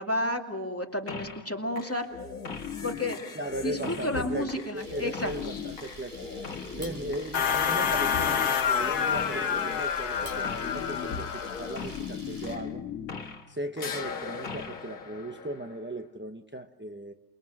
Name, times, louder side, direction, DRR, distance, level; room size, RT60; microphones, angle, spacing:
voice 1, 0.0-2.1 2.8-3.2 3.6-5.3, left 1 dB, 10° left, 2 dB, 2.3 m, -31 dB
sound 1, 1.1-1.5 1.8-13.5 13.8-16.0, left 6 dB, 65° left, 1.9 m, -38 dB
voice 2, 3.4-6.5 6.7-12.8 13.5-17.1, right 1 dB, 15° right, 5 dB, 0.5 m, -37 dB
Camera, 4.7-12.6, right 1 dB, 30° right, 4.5 m, -47 dB
sound 2, 7.3-11.9, left 7 dB, 85° left, 1.6 m, -28 dB
28.0 x 22.0 x 7.7 m, 0.94 s
omnidirectional pair, 1.6 m